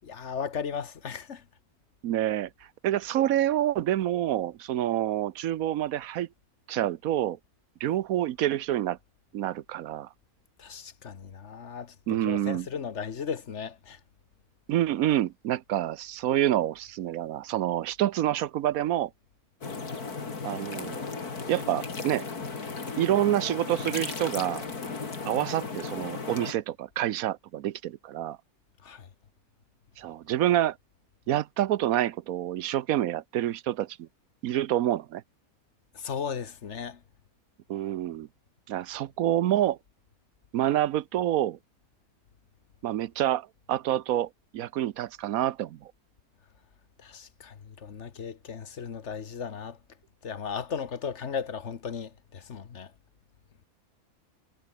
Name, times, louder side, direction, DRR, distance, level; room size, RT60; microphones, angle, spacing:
voice 1, 0.1-1.4 10.6-11.9 12.2-14.0 28.8-29.1 35.9-37.0 47.0-49.8 50.2-52.9, left 6 dB, 50° left, 1.4 m, -36 dB
voice 2, 2.0-2.5 2.8-6.3 6.7-7.4 7.8-9.0 9.3-10.1 12.1-12.7 14.7-19.1 20.4-21.0 21.5-22.3 23.0-24.7 25.3-28.4 30.0-30.8 31.3-34.1 34.4-35.2 37.7-38.3 38.7-39.8 40.5-41.6 42.8-45.8, right 12 dB, 75° right, 1.1 m, -27 dB
sound 1, 19.6-26.5, left 4 dB, 85° left, 3.4 m, -36 dB
omnidirectional pair, 1.6 m